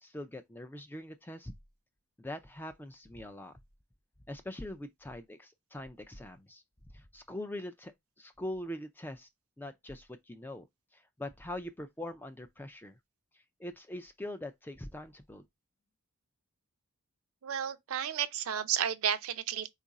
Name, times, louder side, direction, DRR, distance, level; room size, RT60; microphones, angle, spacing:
voice 1, 0.0-1.5 2.2-3.5 4.3-6.6 6.9-9.3 9.6-10.7 10.9-13.0 13.6-15.4, left 1 dB, 10° left, 0.3 m, -43 dB
voice 2, 17.4-19.7, right 9 dB, 75° right, 0.5 m, -32 dB
4.5 x 2.5 x 4.0 m
head